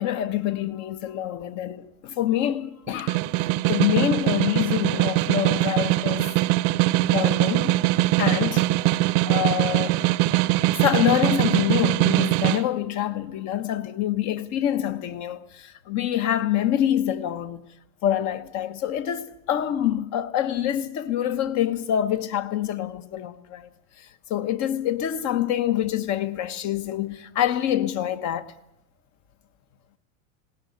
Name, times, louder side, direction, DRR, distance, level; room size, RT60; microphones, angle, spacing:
voice 1, 0.0-3.2 3.7-6.3 7.0-7.8 8.2-8.7 9.3-10.0 10.7-17.6 18.0-23.7 24.0-28.5, left 11 dB, 45° left, 1.3 m, -26 dB
Snare drum, 2.9-12.6, right 18 dB, 55° right, 0.8 m, -22 dB
19.5 x 17.5 x 9.2 m
supercardioid pair, 120°, 40 cm